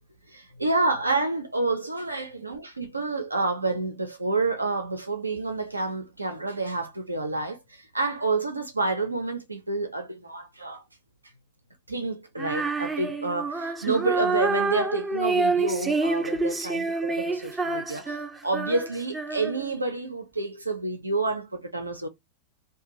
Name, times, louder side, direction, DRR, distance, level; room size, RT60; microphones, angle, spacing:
voice 1, 0.3-10.9 11.9-22.1, right 3 dB, 80° right, 0.5 m, -29 dB
Female singing, 12.4-19.8, right 3 dB, 10° right, 0.5 m, -28 dB
2.4 x 2.3 x 2.9 m
figure-of-eight pair, 90°, 0 cm